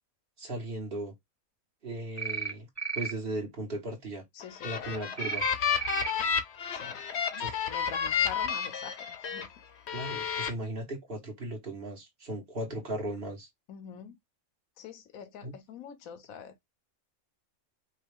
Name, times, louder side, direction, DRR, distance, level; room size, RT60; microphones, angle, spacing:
voice 1, 0.4-1.1 1.8-2.7 2.9-4.2 4.6-5.5 7.4-7.5 9.9-13.5 15.4-15.5, right 1 dB, 40° right, 1.9 m, -37 dB
sound 1, 2.2-2.5 2.8-3.1 5.2-5.5 5.8-6.1, right 5 dB, 20° right, 0.5 m, -33 dB
voice 2, 4.3-5.1 6.7-7.2 7.7-9.5 9.9-10.0 13.7-14.2 14.8-16.6, left 8 dB, 75° left, 1.2 m, -45 dB
sound 2, 4.4-9.5 9.9-10.5, left 7 dB, 55° left, 1.0 m, -31 dB
5.4 x 2.5 x 3.5 m
omnidirectional pair, 1.5 m